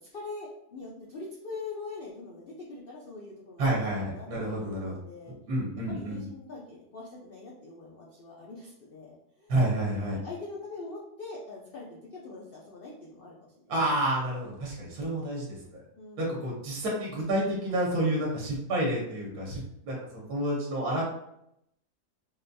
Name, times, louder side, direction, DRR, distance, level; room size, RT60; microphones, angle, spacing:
voice 1, 0.0-5.3 5.9-9.5 10.1-13.5 16.0-16.4, left 3 dB, 85° left, -4 dB, 0.5 m, -43 dB
voice 2, 3.6-4.9 5.5-6.2 9.5-10.2 13.7-15.8 16.2-21.0, right 1 dB, 70° right, -3 dB, 1.3 m, -29 dB
3.9 x 2.3 x 2.6 m, 0.78 s
omnidirectional pair, 1.7 m